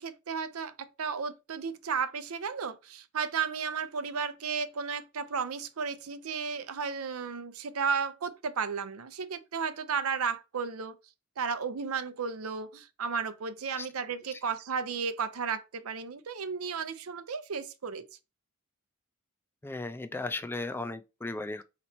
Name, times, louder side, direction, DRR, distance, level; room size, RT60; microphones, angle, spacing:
voice 1, 0.0-11.0 11.4-18.0, right 6 dB, 85° right, 0.6 m, -34 dB
voice 2, 19.6-21.6, left 2 dB, 10° left, 0.3 m, -36 dB
4.1 x 3.0 x 4.2 m
head